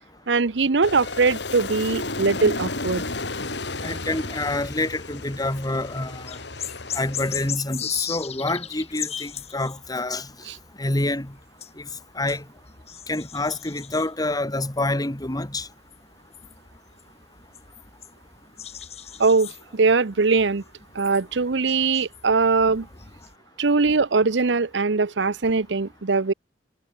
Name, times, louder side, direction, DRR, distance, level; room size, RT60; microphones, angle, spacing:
voice 1, 0.3-3.0 10.5-10.6 19.2-20.6 20.9-22.9 23.6-26.3, right 4 dB, 75° right, 0.8 m, -21 dB
Aircraft, 0.8-7.5, left 3 dB, 70° left, 3.7 m, -33 dB
voice 2, 3.8-6.4 6.9-10.3 10.8-11.3 11.8-11.9 12.2-12.4 13.1-15.7, left 2 dB, 20° left, 1.8 m, -27 dB
sound 1, 5.5-5.7 6.0-23.3, left 9 dB, 35° left, 2.2 m, -38 dB
head